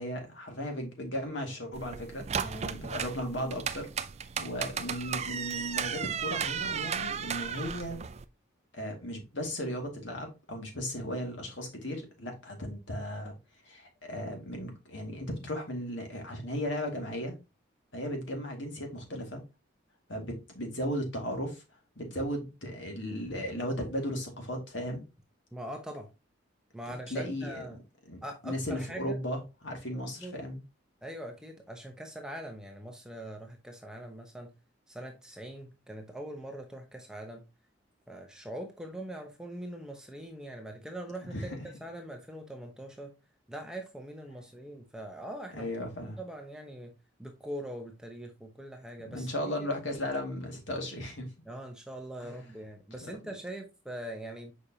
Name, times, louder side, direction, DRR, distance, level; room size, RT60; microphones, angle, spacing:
voice 1, 0.0-3.9 4.4-8.0 8.7-13.3 13.6-17.3 17.9-19.4 20.1-21.6 22.0-25.0 26.9-27.8 28.1-30.6 41.3-41.6 45.5-46.2 49.0-51.3 52.2-52.5 53.0-53.2, equal, 65° left, 2.2 m, -36 dB
sound 1, 1.7-8.2, right 7 dB, 35° right, 0.4 m, -35 dB
voice 2, 25.5-26.1 26.7-27.8 28.2-29.2 29.9-30.3 31.0-34.5 34.9-37.4 38.1-43.1 43.5-45.7 46.2-46.9 47.2-49.3 49.6-49.7 51.5-54.5, right 1 dB, 5° right, 0.9 m, -42 dB
6.5 x 5.1 x 2.8 m
head